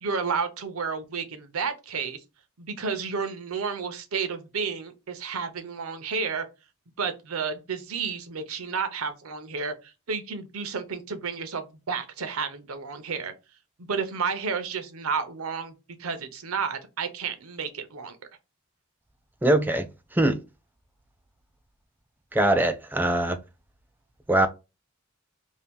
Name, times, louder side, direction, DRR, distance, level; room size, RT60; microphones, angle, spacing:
voice 1, 0.0-2.2 2.6-6.5 7.0-13.3 13.8-18.2, right 5 dB, 80° right, 0.7 m, -31 dB
voice 2, 19.4-19.9 20.1-20.4 22.3-23.4 24.3-24.5, right 1 dB, 10° right, 0.3 m, -22 dB
2.7 x 2.6 x 3.5 m
head